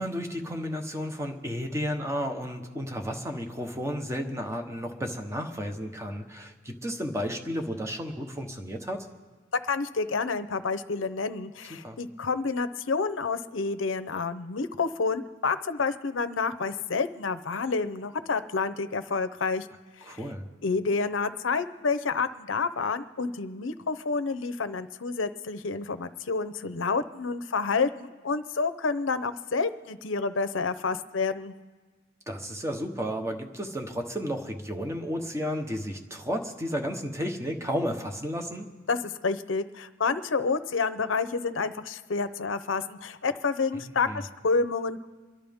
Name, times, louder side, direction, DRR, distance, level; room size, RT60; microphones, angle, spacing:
voice 1, 0.0-9.1 11.7-12.0 20.1-20.4 32.3-38.7 43.8-44.2, equal, 15° right, 5 dB, 1.0 m, -33 dB
voice 2, 9.6-19.7 20.0-20.2 20.6-31.5 38.9-45.1, left 4 dB, 85° left, 12 dB, 0.7 m, -29 dB
28.5 x 11.5 x 3.6 m, 1.4 s
head